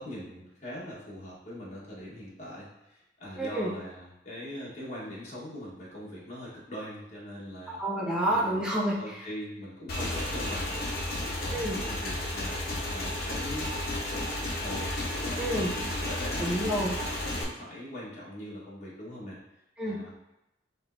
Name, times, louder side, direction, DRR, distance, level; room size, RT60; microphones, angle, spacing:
voice 1, 0.0-7.8 8.2-8.7 9.0-10.9 11.2-13.7 14.0-16.9 17.2-19.4 19.8-20.1, equal, 40° left, -7 dB, 1.2 m, -41 dB
voice 2, 3.4-3.7 7.7-9.2 11.5-11.8 15.4-15.7 16.4-16.9 19.8-20.1, right 1 dB, 5° right, -5 dB, 0.7 m, -29 dB
Motorcycle / Engine, 9.9-17.4, left 1 dB, 55° left, 0.9 m, -32 dB
5.1 x 3.1 x 2.6 m, 0.91 s
head